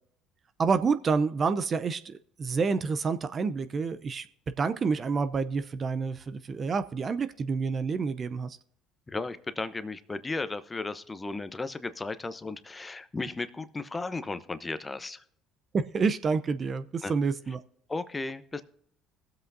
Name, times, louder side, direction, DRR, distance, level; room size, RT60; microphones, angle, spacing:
voice 1, 0.6-4.3 4.6-8.6 15.7-17.6, right 5 dB, 40° right, 12 dB, 0.6 m, -28 dB
voice 2, 9.1-15.2 17.0-17.1 17.9-18.6, left 3 dB, 20° left, 12 dB, 0.8 m, -35 dB
21.0 x 7.9 x 2.7 m, 0.65 s
hypercardioid pair, 60°, 0 cm